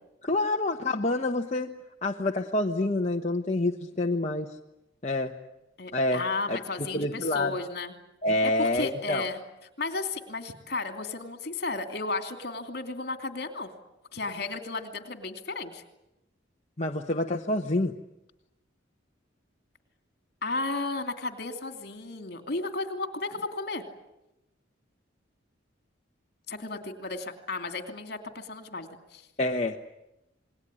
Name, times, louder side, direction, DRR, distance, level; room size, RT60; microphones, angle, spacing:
voice 1, 0.2-1.7 2.0-4.5 5.0-5.3 5.9-6.6 6.9-7.5 8.2-9.3 16.8-17.9 29.4-29.8, left 2 dB, 35° left, 2 dB, 1.1 m, -27 dB
voice 2, 5.8-7.9 8.4-9.4 9.8-13.7 14.1-15.8 20.4-23.8 26.5-29.2, left 3 dB, 55° left, 7 dB, 2.8 m, -34 dB
28.0 x 21.0 x 9.8 m, 0.91 s
head